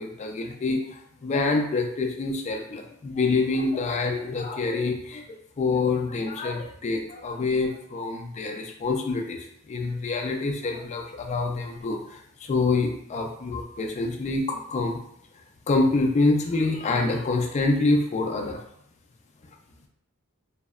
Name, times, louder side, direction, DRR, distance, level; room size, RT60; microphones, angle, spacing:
voice 1, 0.0-15.0 15.7-18.6, left 3 dB, 30° left, 3 dB, 0.3 m, -26 dB
2.8 x 2.0 x 2.3 m, 0.74 s
head